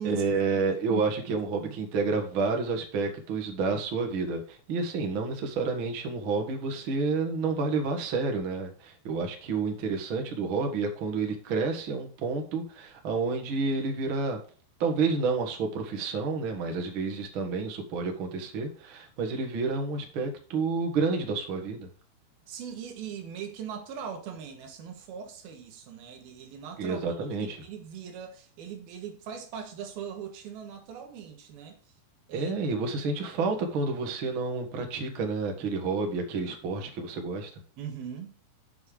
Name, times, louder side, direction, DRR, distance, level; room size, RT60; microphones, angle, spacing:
voice 1, 0.0-14.4 14.8-21.9 26.8-27.6 32.3-37.5, right 4 dB, 50° right, 1.6 m, -29 dB
voice 2, 0.9-1.8 22.5-31.8 32.3-32.5 37.8-38.3, right 7 dB, 70° right, 3.1 m, -40 dB
7.9 x 7.1 x 4.9 m
omnidirectional pair, 4.8 m